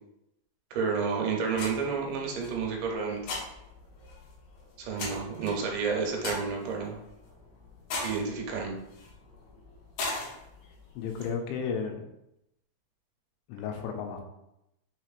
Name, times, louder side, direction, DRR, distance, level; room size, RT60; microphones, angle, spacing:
voice 1, 0.7-3.2 4.8-7.0 8.0-8.8, right 5 dB, 80° right, 0 dB, 2.9 m, -30 dB
sound 1, 1.5-11.3, left 2 dB, 70° left, 2.4 m, -41 dB
voice 2, 10.9-12.0 13.5-14.2, left 6 dB, 85° left, 3 dB, 2.8 m, -33 dB
6.5 x 2.9 x 2.4 m, 0.86 s
omnidirectional pair, 5.1 m